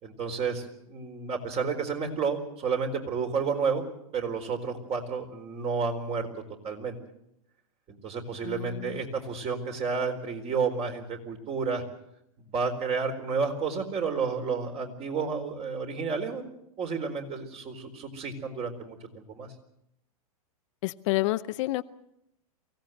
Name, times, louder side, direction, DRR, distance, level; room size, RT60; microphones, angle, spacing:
voice 1, 0.0-3.8 4.1-6.3 6.6-7.0 7.9-11.8 12.5-16.4 16.8-19.5, right 5 dB, 30° right, 5 dB, 4.2 m, -31 dB
voice 2, 8.4-9.0 20.8-21.8, left 19 dB, 55° left, 12 dB, 0.8 m, -29 dB
23.5 x 17.0 x 7.9 m, 0.80 s
hypercardioid pair, 110°, 19 cm